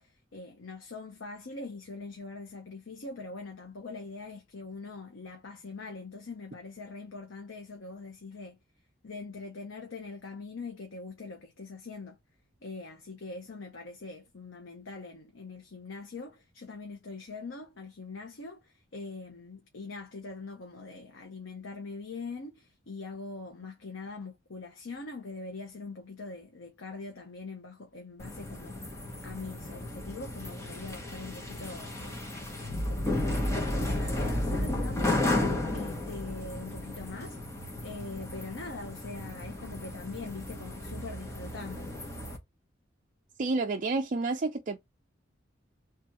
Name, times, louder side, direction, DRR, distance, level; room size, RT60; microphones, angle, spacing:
voice 1, 0.0-8.6 9.0-12.2 12.6-28.8 29.2-32.5 32.9-35.2 35.7-37.4 37.8-41.9, left 3 dB, 75° left, 0.8 m, -43 dB
sound 1, 28.2-42.4, left 1 dB, 15° left, 1.0 m, -33 dB
voice 2, 43.4-44.8, right 3 dB, 40° right, 0.5 m, -29 dB
3.4 x 2.9 x 4.5 m
head